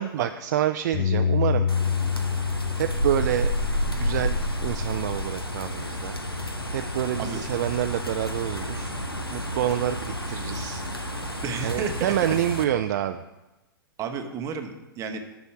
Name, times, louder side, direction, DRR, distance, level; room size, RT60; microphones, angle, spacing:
voice 1, 0.0-1.7 2.8-3.5 4.0-6.2 6.7-8.9 9.3-10.8 11.6-13.2, right 11 dB, 45° right, 8 dB, 0.3 m, -27 dB
Bass guitar, 0.9-5.4 6.0-7.2, left 7 dB, 25° left, 1.6 m, -29 dB
sound 1, 1.7-12.6, equal, 90° left, 0.9 m, -30 dB
voice 2, 7.1-7.5 8.6-8.8 11.4-12.1 14.0-15.2, right 6 dB, 25° right, 6 dB, 0.9 m, -32 dB
8.2 x 6.1 x 5.8 m, 1.0 s
figure-of-eight pair, 105°, 12 cm